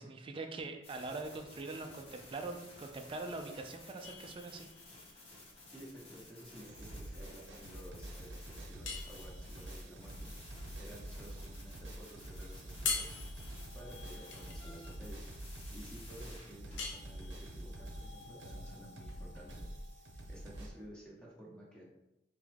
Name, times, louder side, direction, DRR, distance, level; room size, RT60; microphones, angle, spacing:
voice 1, 0.0-4.7, right 3 dB, 30° right, 4 dB, 0.3 m, -43 dB
sound 1, 0.8-17.2 18.0-18.2, left 2 dB, 35° left, 1.0 m, -55 dB
sound 2, 4.0-20.9, left 5 dB, 85° left, 0.6 m, -46 dB
voice 2, 5.7-10.3 10.8-13.2 13.7-15.3 15.7-19.6 20.3-21.8, equal, 5° left, -4 dB, 0.9 m, -53 dB
sound 3, 6.5-20.7, right 1 dB, 85° right, 0.7 m, -47 dB
3.5 x 3.0 x 3.3 m, 0.91 s
head